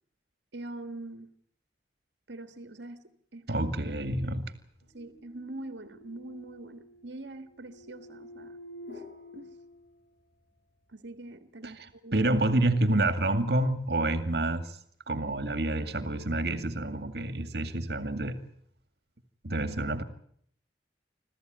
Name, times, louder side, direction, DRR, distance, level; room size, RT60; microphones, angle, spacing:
voice 1, 0.5-1.3 2.3-3.0 3.3-3.6 4.9-8.6 8.9-9.0 9.3-9.6 10.9-12.3, right 2 dB, 80° right, 1.6 m, -43 dB
voice 2, 3.5-4.5 11.6-14.8 15.1-18.4 19.4-20.0, right 2 dB, 65° right, 2.1 m, -28 dB
sound 1, 4.5-10.5, left 1 dB, 60° left, 5.0 m, -50 dB
27.0 x 15.5 x 9.2 m
head